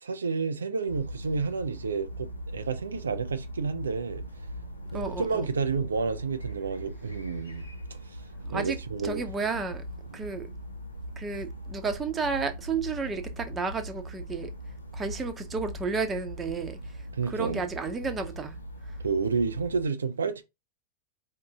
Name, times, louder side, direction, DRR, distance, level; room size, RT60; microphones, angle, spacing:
voice 1, 0.0-4.2 4.9-7.7 8.1-8.2 8.5-9.3 10.1-10.2 17.1-17.6 19.0-20.4, right 5 dB, 70° right, 0.4 m, -30 dB
sound 1, 0.9-19.9, equal, 85° left, 0.8 m, -40 dB
voice 2, 4.9-5.5 8.5-8.8 9.0-9.8 10.1-10.5 11.2-14.5 14.9-16.8 17.3-18.6, right 4 dB, 20° right, 0.8 m, -32 dB
4.7 x 2.7 x 3.5 m
figure-of-eight pair, 90°, 0 cm